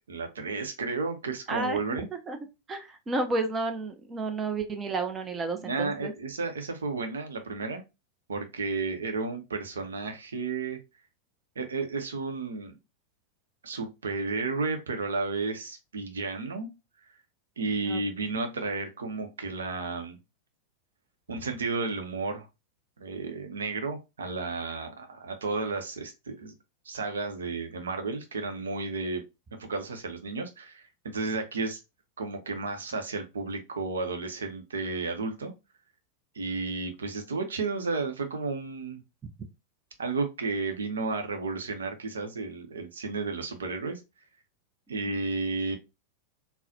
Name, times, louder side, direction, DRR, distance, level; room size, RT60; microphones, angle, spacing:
voice 1, 0.1-2.1 5.6-7.8 8.3-10.8 11.6-12.7 13.6-16.7 17.6-20.2 21.3-22.5 23.0-26.5 26.8-29.2 29.6-31.8 32.2-35.5 36.3-39.0 40.0-44.0 44.9-45.8, right 3 dB, 70° right, 5 dB, 0.7 m, -32 dB
voice 2, 1.5-1.8 2.1-2.4 2.7-6.1 17.8-18.0 45.1-45.2, right 3 dB, 20° right, 6 dB, 0.5 m, -31 dB
3.8 x 2.0 x 2.7 m, 0.25 s
figure-of-eight pair, 90°, 0 cm